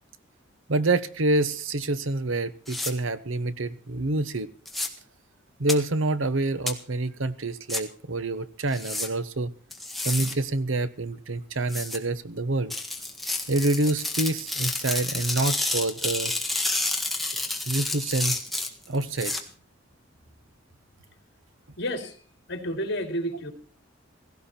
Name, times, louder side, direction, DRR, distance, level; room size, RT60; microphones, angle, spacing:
voice 1, 0.7-4.5 5.6-9.5 10.0-12.7 13.5-16.3 17.7-18.4 18.9-19.3, right 2 dB, 85° right, 14 dB, 1.0 m, -27 dB
sound 1, 2.7-2.9 4.7-4.9 5.7-5.8 6.7-6.8 7.7-7.8 8.7-9.1 9.7-10.3 11.7-12.0 12.7-19.4, left 2 dB, ahead, 1.7 m, -29 dB
voice 2, 21.8-22.2 22.5-23.5, equal, 60° left, 5 dB, 3.1 m, -30 dB
16.5 x 16.5 x 4.4 m, 0.40 s
head